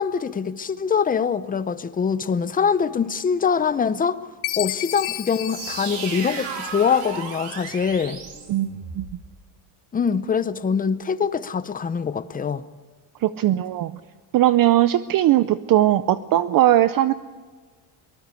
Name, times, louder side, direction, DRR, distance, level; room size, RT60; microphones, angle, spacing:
voice 1, 0.0-4.2 4.6-8.2 9.9-12.6, left 6 dB, 15° left, 0.6 m, -23 dB
Chime, 4.4-7.0, left 16 dB, 70° left, 1.3 m, -32 dB
sound 1, 5.4-9.2, right 5 dB, 85° right, 5.8 m, -34 dB
voice 2, 8.5-9.1 13.2-14.0 14.3-17.1, right 13 dB, 45° right, 0.6 m, -19 dB
23.5 x 18.5 x 8.3 m
cardioid pair, 140°, 49 cm